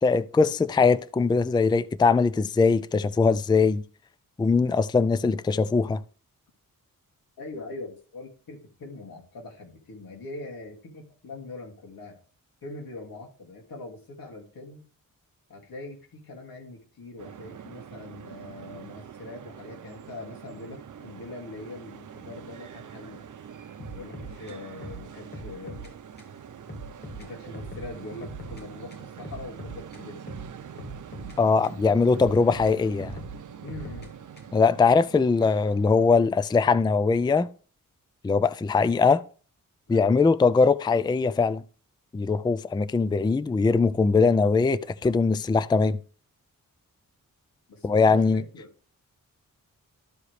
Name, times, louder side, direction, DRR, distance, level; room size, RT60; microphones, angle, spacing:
voice 1, 0.0-3.8 4.4-6.0 31.4-33.2 34.5-37.5 38.2-39.2 39.9-41.6 42.1-46.0 47.8-48.4, left 4 dB, 15° left, 0.3 m, -21 dB
voice 2, 7.4-12.2 12.6-14.8 15.5-23.2 23.9-25.8 27.2-30.3 33.6-34.1 39.9-40.2 47.7-48.7, left 2 dB, 90° left, 2.4 m, -42 dB
sound 1, 17.2-36.1, right 8 dB, 60° right, 0.7 m, -44 dB
sound 2, 23.8-25.9 26.2-26.3 26.7-28.6 28.9-31.8 32.1-34.7, right 1 dB, 30° left, 2.3 m, -42 dB
13.0 x 4.8 x 3.3 m
wide cardioid pair, 90°, 34 cm